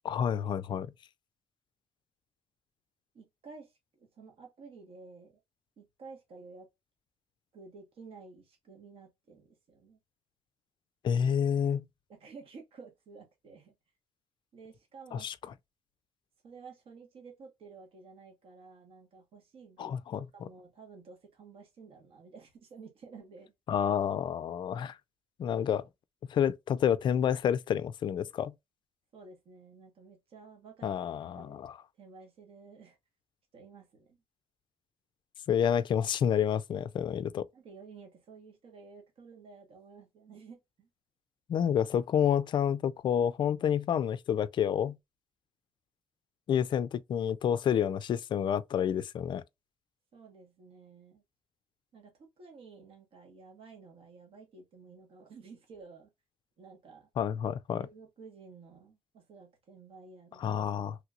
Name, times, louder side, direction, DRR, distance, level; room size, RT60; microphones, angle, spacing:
voice 1, 0.0-0.9 11.0-11.8 15.1-15.3 19.8-20.5 23.7-25.0 25.4-25.9 26.3-28.5 30.8-31.7 35.5-37.5 41.5-45.0 46.5-49.4 57.2-57.9 60.4-61.0, left 8 dB, 45° left, 0.4 m, -29 dB
voice 2, 3.1-5.4 5.8-6.7 7.5-10.0 12.1-13.7 14.5-15.3 16.4-19.9 20.3-23.5 29.1-31.0 31.3-31.6 32.0-33.0 33.5-34.2 37.5-40.9 50.1-51.2 51.9-56.1 56.6-57.1 57.8-60.5, right 4 dB, 60° right, 1.2 m, -52 dB
3.1 x 2.9 x 2.3 m
cardioid pair, 110°, 11 cm